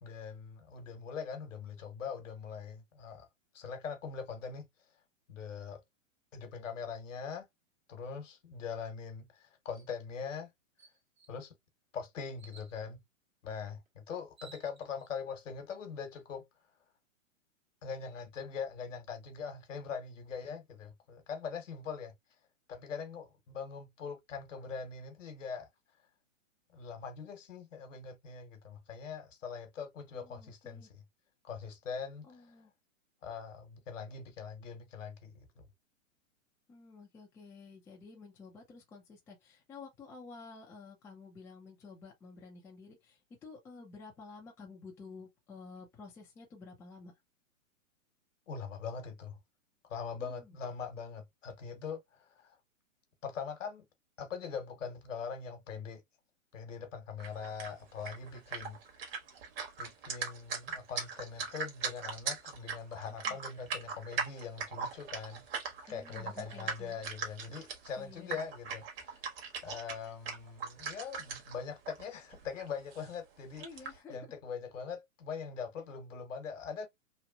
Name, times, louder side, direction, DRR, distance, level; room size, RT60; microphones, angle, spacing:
voice 1, 0.0-3.3 3.5-4.7 5.3-5.8 6.3-7.5 7.9-10.5 11.3-11.5 11.9-13.0 13.4-16.5 17.8-22.1 22.7-25.7 26.7-31.0 31.4-32.5 33.2-35.7 48.5-49.4 49.8-52.6 53.2-53.9 54.2-56.0 56.5-58.8 59.8-65.5 65.9-69.3 69.6-73.6 74.1-76.9, left 6 dB, 65° left, 1.1 m, -42 dB
sound 1, 9.7-9.9 10.4-10.5 10.8-11.4 12.4-12.8 13.9-14.0 14.2-15.1, right 5 dB, 90° right, 1.3 m, -57 dB
voice 2, 30.1-30.9 32.2-32.7 36.7-47.1 50.2-50.6 63.2-63.4 65.9-67.0 68.0-68.5 73.6-74.2, left 4 dB, 5° left, 0.5 m, -51 dB
sound 2, 57.2-71.6 71.8-72.0 72.3-73.1 73.5-73.9, right 5 dB, 45° right, 1.3 m, -40 dB
3.0 x 2.4 x 2.2 m
hypercardioid pair, 125°, 40 cm